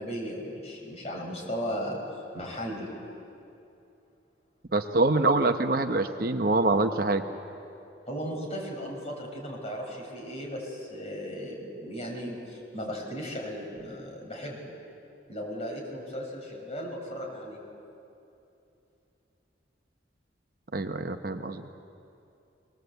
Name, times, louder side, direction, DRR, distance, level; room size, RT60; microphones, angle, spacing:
voice 1, 0.0-2.0 2.3-2.9 8.1-14.7 15.3-17.6, equal, 35° left, -1 dB, 5.7 m, -36 dB
voice 2, 4.7-7.2 20.7-21.6, right 2 dB, 50° right, 7 dB, 0.9 m, -25 dB
22.5 x 19.5 x 8.0 m, 2.7 s
head